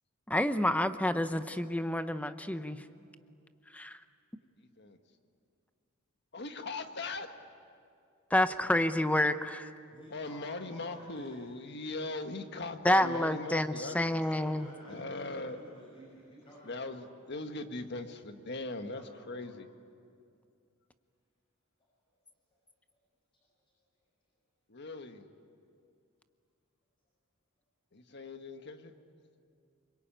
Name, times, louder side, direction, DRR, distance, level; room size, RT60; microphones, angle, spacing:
voice 1, 0.3-2.8 3.7-4.0 8.3-9.7 12.8-14.7, left 1 dB, 5° left, 10 dB, 0.8 m, -28 dB
voice 2, 4.6-5.0 6.3-7.3 10.1-14.1 14.9-15.6 16.6-19.7 24.7-25.3 27.9-28.9, left 2 dB, 55° left, 7 dB, 1.6 m, -40 dB
voice 3, 9.9-11.5 13.4-17.1 18.7-19.6, equal, 25° left, -5 dB, 6.1 m, -53 dB
26.5 x 24.0 x 9.1 m, 2.4 s
head